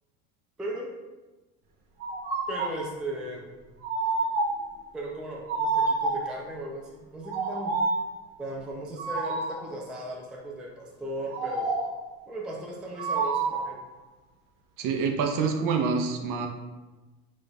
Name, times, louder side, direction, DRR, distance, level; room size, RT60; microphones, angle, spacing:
sound 1, 2.0-2.8 3.8-4.7 5.5-6.4 7.2-8.1 9.0-9.7 11.3-12.0 13.0-13.8, right 3 dB, 65° right, 1.1 m, -28 dB
voice 1, 2.5-3.6 4.9-7.7 8.4-11.7 12.3-13.8, right 1 dB, ahead, -2 dB, 0.3 m, -37 dB
voice 2, 14.8-16.5, right 5 dB, 50° right, 4 dB, 0.6 m, -26 dB
3.8 x 2.5 x 3.4 m, 1.2 s
supercardioid pair, 95°, 43 cm